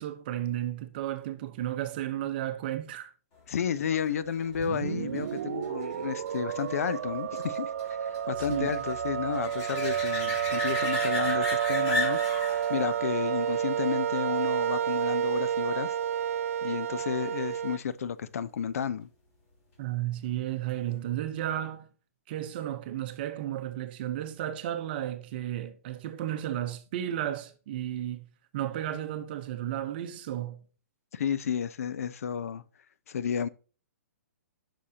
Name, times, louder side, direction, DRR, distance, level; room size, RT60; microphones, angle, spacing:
voice 1, 0.0-3.1 8.4-8.7 19.8-21.9 22.3-28.2 28.5-30.6, right 12 dB, 40° right, 0.9 m, -33 dB
voice 2, 3.5-12.2 12.7-15.9 16.6-19.1 31.1-32.6 33.1-33.5, left 8 dB, 70° left, 0.6 m, -32 dB
sound 1, 3.8-15.1 20.7-20.8, left 2 dB, 25° left, 3.1 m, -37 dB
sound 2, 4.6-17.8, right 9 dB, 65° right, 0.4 m, -30 dB
9.7 x 5.9 x 2.8 m
hypercardioid pair, 160°, 8 cm